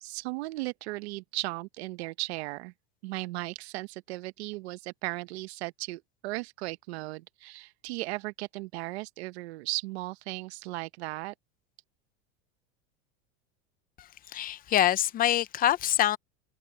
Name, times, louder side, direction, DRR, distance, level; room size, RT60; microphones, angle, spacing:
voice 1, 0.0-2.7 3.0-11.3, right 20 dB, 80° right, 1.1 m, -36 dB
voice 2, 14.3-16.2, left 12 dB, 30° left, 0.5 m, -25 dB
supercardioid pair, 140°, 32 cm